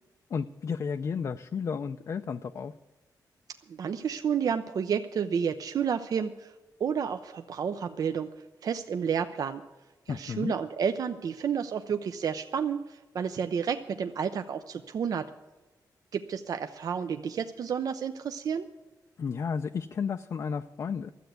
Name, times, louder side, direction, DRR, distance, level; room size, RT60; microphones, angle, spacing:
voice 1, 0.3-2.7 10.1-10.5 19.2-21.1, left 6 dB, 45° left, 8 dB, 0.4 m, -32 dB
voice 2, 3.7-6.5 6.8-8.3 8.6-9.6 10.1-15.3 16.1-18.7, right 7 dB, 60° right, 8 dB, 0.5 m, -30 dB
12.5 x 7.9 x 9.2 m, 1.2 s
wide cardioid pair, 135°, 7 cm